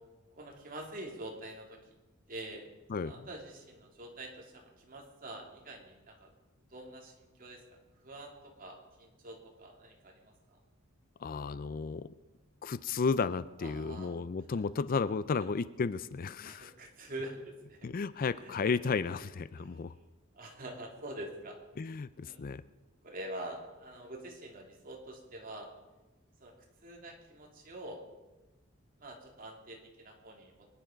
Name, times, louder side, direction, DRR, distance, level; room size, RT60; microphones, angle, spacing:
voice 1, 0.4-1.8 2.3-2.7 3.0-6.3 6.7-10.6 13.6-14.1 14.5-14.6 16.4-17.8 18.4-18.6 19.6-19.8 20.3-21.6 22.2-22.4 23.0-25.7 26.4-26.5 26.8-28.0 29.0-30.7, right 1 dB, 45° right, 1 dB, 2.8 m, -46 dB
voice 2, 2.9-3.3 11.2-12.1 12.6-16.7 17.8-19.9 21.8-22.6, left 5 dB, 45° left, 16 dB, 0.4 m, -33 dB
24.0 x 10.0 x 5.1 m, 1.1 s
head